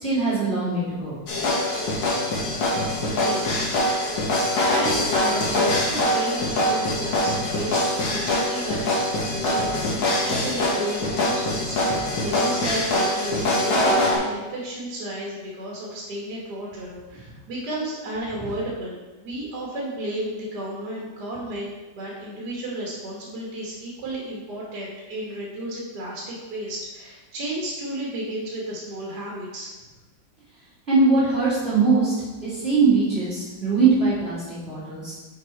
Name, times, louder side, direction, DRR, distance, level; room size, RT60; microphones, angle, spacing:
voice 1, 0.0-1.2 30.9-32.1 32.4-35.1, right 4 dB, 35° right, -10 dB, 2.4 m, -21 dB
sound 1, 1.3-14.2, left 1 dB, 70° left, 1.9 m, -23 dB
voice 2, 3.0-4.4 4.7-29.7, right 1 dB, 60° right, -4 dB, 1.8 m, -33 dB
6.9 x 4.8 x 4.3 m, 1.2 s
omnidirectional pair, 2.0 m